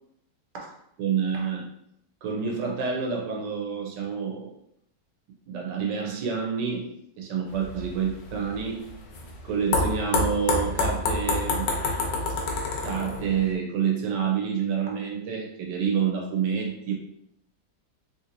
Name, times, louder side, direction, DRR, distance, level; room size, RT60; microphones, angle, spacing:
voice 1, 0.5-1.7 2.2-4.5 5.5-6.9 7.2-8.8 9.4-11.7 12.8-16.9, right 6 dB, 80° right, -1 dB, 1.4 m, -28 dB
sound 1, 7.5-13.5, left 3 dB, 90° left, 1.3 m, -28 dB
3.3 x 2.8 x 2.5 m, 0.74 s
omnidirectional pair, 1.9 m